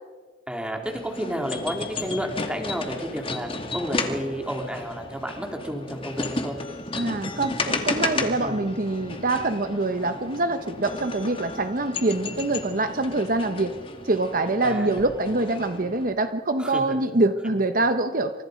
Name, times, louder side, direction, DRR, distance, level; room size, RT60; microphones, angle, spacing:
voice 1, 0.5-6.6 8.4-8.7 14.6-15.0 16.6-17.0, equal, 5° right, 2 dB, 3.4 m, -31 dB
sound 1, 0.8-16.1, left 3 dB, 30° left, 2.3 m, -33 dB
voice 2, 7.0-13.7 14.0-18.3, right 2 dB, 50° right, 9 dB, 1.1 m, -25 dB
28.5 x 26.0 x 5.2 m, 1.5 s
head